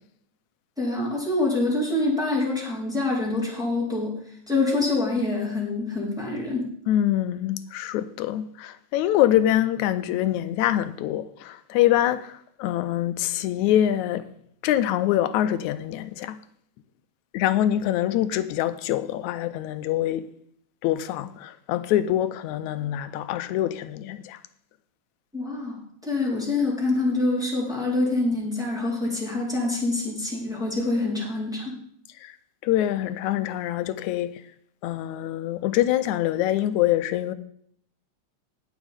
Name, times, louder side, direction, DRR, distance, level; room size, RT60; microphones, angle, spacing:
voice 1, 0.8-4.2 4.5-6.7 25.3-31.7, left 2 dB, ahead, 3.7 m, -26 dB
voice 2, 6.9-14.3 14.6-16.4 17.3-20.3 20.8-24.4 32.2-32.4 32.6-34.4 34.8-37.3, left 12 dB, 90° left, 2.0 m, -24 dB
19.5 x 7.2 x 3.6 m
omnidirectional pair, 3.4 m